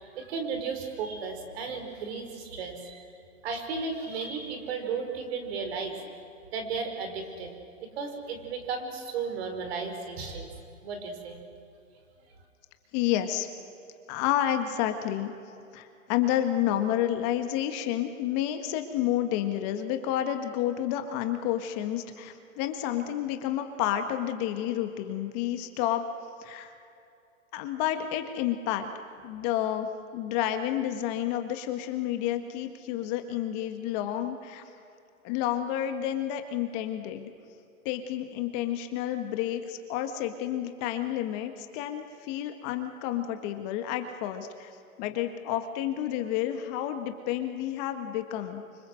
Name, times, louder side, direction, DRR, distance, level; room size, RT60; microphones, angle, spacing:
voice 1, 0.0-3.0 3.4-6.2 6.5-10.5 10.8-11.4, right 5 dB, 50° right, 5 dB, 5.2 m, -34 dB
voice 2, 12.9-13.5 14.1-15.3 15.7-26.1 26.4-26.7 27.5-28.9 29.2-29.9 30.1-34.6 35.2-37.3 37.9-44.7 45.0-48.6, left 11 dB, 30° left, 7 dB, 1.7 m, -30 dB
28.5 x 25.5 x 7.9 m, 2.6 s
hypercardioid pair, 145°, 41 cm